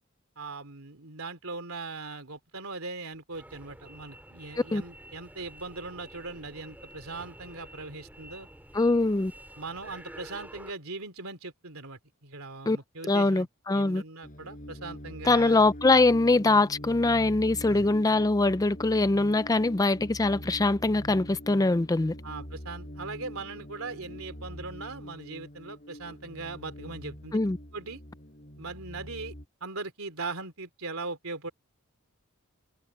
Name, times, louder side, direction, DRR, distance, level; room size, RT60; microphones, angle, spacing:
voice 1, 0.4-8.5 9.6-13.5 13.7-15.6 17.6-17.9 22.2-27.4 27.7-28.0 28.6-29.3 29.6-31.5, right 3 dB, 70° right, 3.4 m, -40 dB
sound 1, 3.3-10.7, right 1 dB, 10° right, 4.7 m, -49 dB
voice 2, 8.7-9.3 12.7-12.8 13.1-14.0 15.2-22.1 27.3-27.6, left 2 dB, 15° left, 0.4 m, -23 dB
sound 2, 14.2-29.5, equal, 35° left, 7.5 m, -44 dB
head